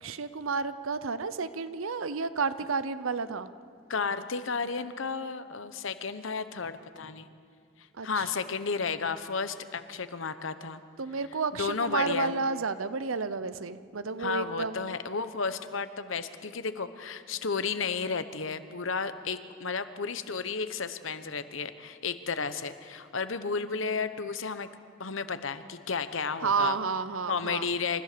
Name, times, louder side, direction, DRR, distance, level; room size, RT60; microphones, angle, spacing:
voice 1, 0.0-3.5 8.0-8.2 11.0-14.9 26.4-27.7, right 4 dB, 90° right, 13 dB, 0.8 m, -31 dB
voice 2, 3.9-7.3 8.0-10.8 11.5-12.3 14.2-24.7 25.0-26.8 27.3-28.0, left 5 dB, 75° left, 11 dB, 1.0 m, -33 dB
28.0 x 14.5 x 6.8 m, 2.2 s
head